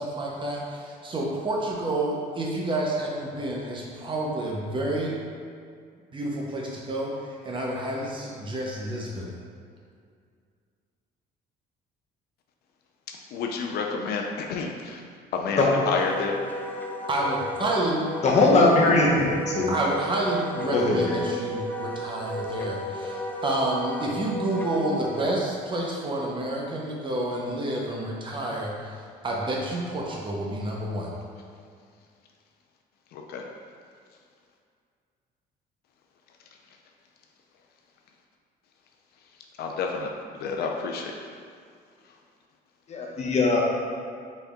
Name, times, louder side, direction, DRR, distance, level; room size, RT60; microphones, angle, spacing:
voice 1, 0.0-5.1 6.1-9.3 17.1-18.0 19.7-31.1, right 1 dB, 30° right, -2 dB, 0.8 m, -29 dB
voice 2, 13.1-15.0 15.3-16.4 19.6-19.7 33.1-33.4 39.6-40.1 40.3-41.1, left 5 dB, 70° left, 1 dB, 0.5 m, -30 dB
Wind instrument woodwind instrument, 15.9-25.3, left 1 dB, 10° left, 0.4 m, -34 dB
voice 3, 18.2-19.7 20.7-21.1 42.9-43.6, left 2 dB, 40° left, -3 dB, 0.9 m, -20 dB
4.2 x 3.3 x 3.6 m, 2.2 s
cardioid pair, 110°, 17 cm